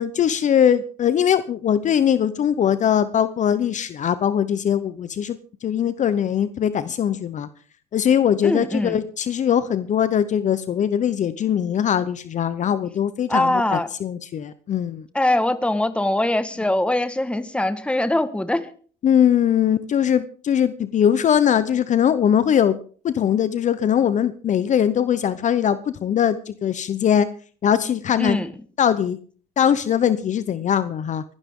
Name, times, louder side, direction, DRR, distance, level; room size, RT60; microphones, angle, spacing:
voice 1, 0.0-7.5 7.9-15.0 19.0-22.8 23.0-27.3 27.6-28.4 28.8-29.2 29.6-31.2, left 9 dB, 45° left, 14 dB, 0.8 m, -21 dB
voice 2, 8.4-9.0 13.3-13.9 15.1-18.7 28.2-28.5, left 1 dB, 5° left, 11 dB, 1.5 m, -22 dB
23.5 x 11.5 x 3.7 m, 0.43 s
cardioid pair, 110°, 17 cm